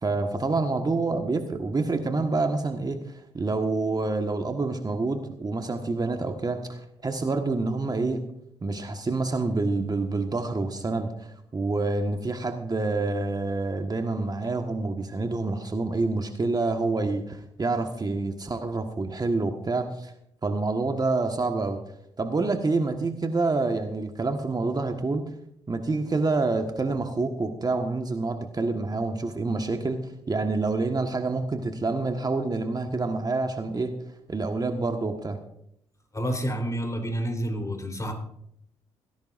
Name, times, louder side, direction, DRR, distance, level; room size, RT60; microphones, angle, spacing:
voice 1, 0.0-3.0 3.3-8.2 8.6-20.1 20.4-21.8 22.2-25.3 25.7-33.9 34.3-35.4, right 3 dB, 30° right, 6 dB, 1.5 m, -27 dB
voice 2, 36.1-38.1, equal, 25° left, 5 dB, 3.7 m, -29 dB
18.5 x 16.0 x 2.6 m, 0.73 s
hypercardioid pair, 45°, 13 cm